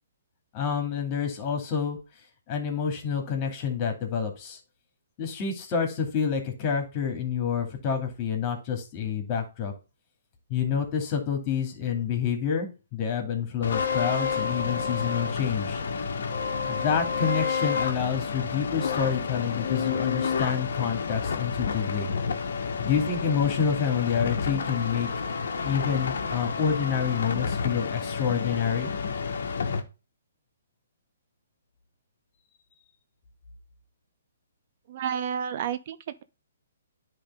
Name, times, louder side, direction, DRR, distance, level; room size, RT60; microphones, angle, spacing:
voice 1, 0.5-2.0 2.5-4.6 5.2-9.7 10.5-15.8 16.7-22.1 22.8-25.1 25.6-28.9, left 7 dB, 35° left, 2.2 m, -28 dB
sound 1, 13.6-29.8, left 5 dB, 65° left, 1.1 m, -30 dB
voice 2, 34.9-36.2, right 8 dB, 50° right, 0.5 m, -31 dB
10.0 x 3.4 x 3.5 m
hypercardioid pair, 135°, 0 cm